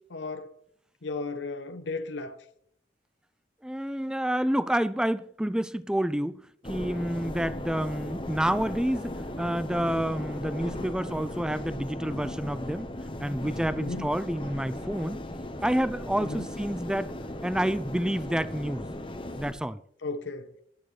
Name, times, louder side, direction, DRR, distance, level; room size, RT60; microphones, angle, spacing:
voice 1, 0.1-0.5 1.0-2.4 13.8-14.1 16.2-16.5 20.0-20.5, left 3 dB, 85° left, 0.8 m, -35 dB
voice 2, 3.6-6.4 6.6-12.9 13.2-15.2 15.6-17.1 17.4-18.9 19.3-19.8, right 1 dB, 5° right, 0.3 m, -29 dB
sound 1, 6.6-19.5, left 1 dB, 30° left, 1.0 m, -37 dB
19.5 x 8.9 x 3.2 m
head